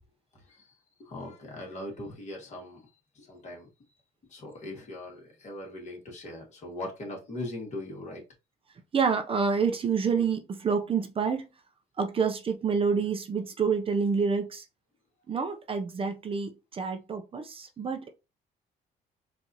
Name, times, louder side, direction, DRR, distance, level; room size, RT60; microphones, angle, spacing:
voice 1, 0.3-0.7 1.0-3.7 4.3-8.2, left 1 dB, 45° left, 2.0 m, -40 dB
voice 2, 8.9-11.5 12.0-14.6 15.3-18.1, right 5 dB, 35° right, 0.6 m, -28 dB
4.5 x 2.7 x 2.9 m
cardioid pair, 110°, 17 cm